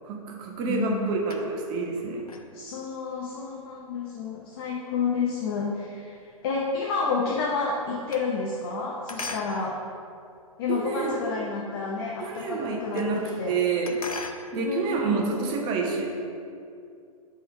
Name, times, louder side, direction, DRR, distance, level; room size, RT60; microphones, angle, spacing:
voice 1, 0.0-2.2 10.7-11.2 12.2-14.0 14.5-16.1, right 4 dB, 25° right, 1 dB, 0.8 m, -28 dB
sound 1, 0.6-1.8 2.2-6.7 7.0-8.8 9.1-11.1 11.6-11.7 11.9-12.0 12.2-13.2 13.5-14.5, left 3 dB, 75° left, 0.6 m, -42 dB
voice 2, 0.7-1.1 2.5-9.8 10.6-13.6 14.6-15.3, left 4 dB, 40° left, -2 dB, 0.7 m, -30 dB
5.3 x 3.9 x 5.4 m, 2.4 s
figure-of-eight pair, 115°, 19 cm